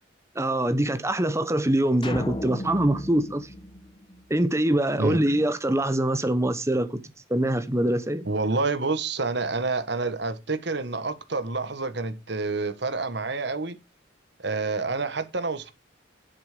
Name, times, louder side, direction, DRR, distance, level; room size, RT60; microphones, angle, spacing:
voice 1, 0.3-3.5 4.3-7.0 7.3-8.2, right 1 dB, 15° right, 1.1 m, -24 dB
sound 1, 2.0-4.6, left 1 dB, 25° left, 1.0 m, -36 dB
voice 2, 8.2-13.8 14.4-15.7, right 3 dB, 60° right, 1.4 m, -28 dB
10.5 x 8.0 x 5.1 m
head